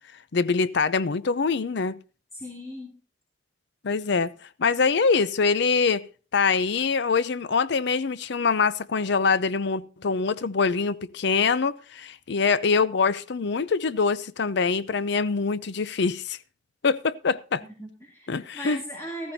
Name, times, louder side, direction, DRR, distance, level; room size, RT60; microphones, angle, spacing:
voice 1, 0.3-2.0 3.8-4.3 4.6-6.0 6.3-16.4 16.8-17.6 18.3-18.8, left 5 dB, 60° left, 0.6 m, -24 dB
voice 2, 2.3-2.9 17.6-19.3, equal, 15° left, 2.8 m, -38 dB
14.5 x 14.0 x 2.7 m
head